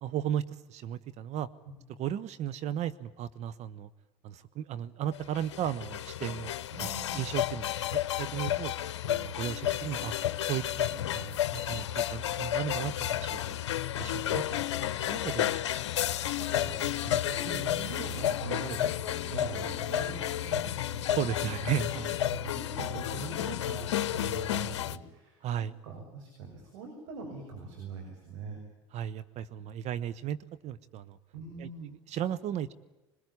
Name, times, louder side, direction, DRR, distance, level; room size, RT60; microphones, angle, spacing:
voice 1, 0.0-1.5 2.0-3.9 4.2-6.5 6.8-6.9 7.1-8.7 9.1-10.1 10.5-13.4 14.0-15.6 20.4-20.5 21.2-22.2 25.4-25.7 28.9-30.4 30.6-31.2 31.6-32.7, right 10 dB, 50° right, 14 dB, 1.0 m, -35 dB
sound 1, 5.1-25.0, left 11 dB, 85° left, 0.8 m, -32 dB
voice 2, 6.7-7.2 16.4-21.1 22.3-25.4 25.8-28.6 31.3-31.9, right 3 dB, 75° right, 2 dB, 6.2 m, -42 dB
21.5 x 21.5 x 9.7 m, 1.0 s
hypercardioid pair, 80°, 15 cm